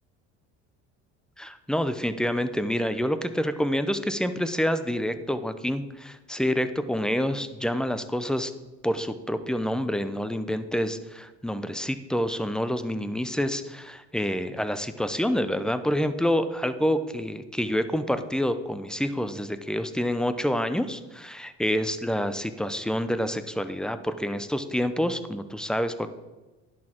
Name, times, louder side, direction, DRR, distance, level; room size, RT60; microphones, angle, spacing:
voice 1, 1.4-8.5 8.8-26.1, equal, ahead, 11 dB, 0.6 m, -27 dB
10.5 x 6.4 x 4.4 m, 1.2 s
supercardioid pair, 95°, 32 cm